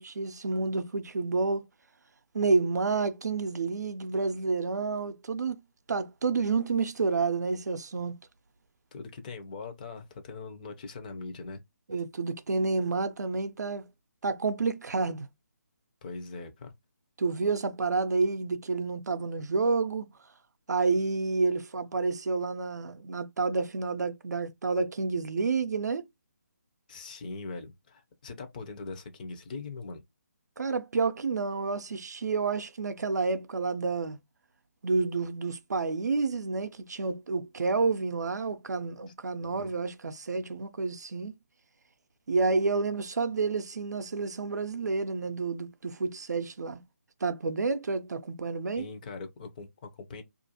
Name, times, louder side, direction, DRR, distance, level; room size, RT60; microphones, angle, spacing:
voice 1, 0.0-1.6 2.3-5.6 5.9-8.1 11.9-13.9 14.2-15.3 17.2-20.1 20.7-26.0 30.6-34.2 34.8-41.3 42.3-46.8 47.2-48.9, right 4 dB, 75° right, 0.5 m, -29 dB
voice 2, 8.9-11.6 16.0-16.7 26.9-30.0 39.4-39.7 48.8-50.2, left 3 dB, 30° left, 0.5 m, -41 dB
2.4 x 2.2 x 2.7 m
figure-of-eight pair, 155°, 9 cm